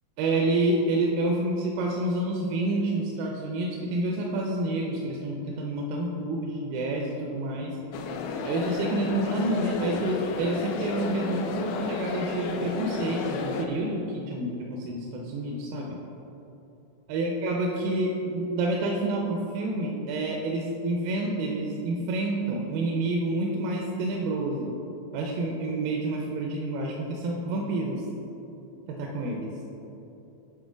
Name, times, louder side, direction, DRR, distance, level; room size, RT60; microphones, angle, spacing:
voice 1, 0.2-7.8 8.4-16.0 17.1-24.7 25.1-28.0 28.9-29.5, right 2 dB, 85° right, -1 dB, 2.4 m, -28 dB
sound 1, 7.9-13.7, left 4 dB, 80° left, 2.0 m, -32 dB
8.5 x 3.8 x 5.0 m, 3.0 s
omnidirectional pair, 4.0 m